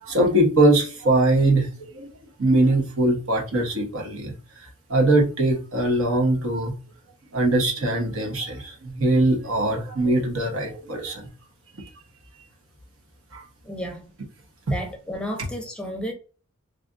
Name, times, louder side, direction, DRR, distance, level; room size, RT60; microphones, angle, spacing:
voice 1, 0.0-2.1 2.4-4.3 4.6-6.7 7.3-11.3 13.3-13.4, right 1 dB, 75° right, 1.0 m, -21 dB
voice 2, 13.6-14.1 14.7-16.1, equal, 5° left, 0.6 m, -32 dB
3.3 x 2.5 x 2.5 m
head